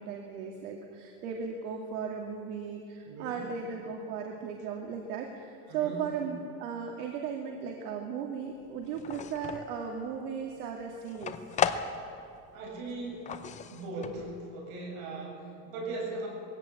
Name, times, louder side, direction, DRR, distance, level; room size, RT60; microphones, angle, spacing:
voice 1, 0.0-11.4, right 6 dB, 85° right, 1 dB, 2.5 m, -36 dB
voice 2, 3.0-3.4 5.7-6.0 12.3-13.3 13.7-16.3, right 2 dB, 65° right, 0 dB, 7.8 m, -39 dB
sound 1, 8.7-9.8 10.2-12.4 12.6-14.4, left 7 dB, 15° left, 0.6 m, -35 dB
22.0 x 16.5 x 8.5 m, 2.5 s
cardioid pair, 165°, 43 cm